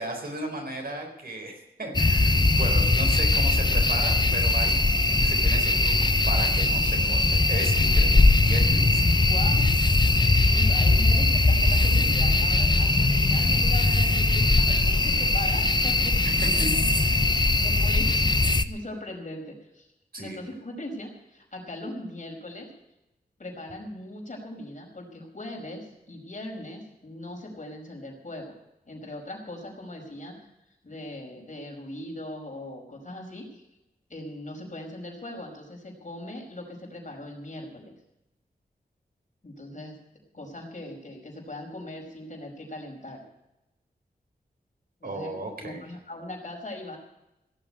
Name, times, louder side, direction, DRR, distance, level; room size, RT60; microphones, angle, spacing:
voice 1, 0.0-9.2 16.2-17.2 20.1-20.4 45.0-45.9, right 1 dB, 65° right, 2 dB, 4.3 m, -36 dB
sound 1, 1.9-18.6, left 2 dB, 25° left, 0.7 m, -21 dB
voice 2, 8.4-8.9 9.3-9.7 10.5-16.2 16.6-16.8 17.3-19.9 20.2-22.7 23.4-28.5 28.9-30.4 30.7-33.6 34.1-37.9 39.4-40.0 40.3-43.2 45.0-47.0, left 1 dB, 50° left, 1 dB, 5.2 m, -40 dB
17.0 x 7.4 x 9.6 m, 0.90 s
wide cardioid pair, 75°, 16 cm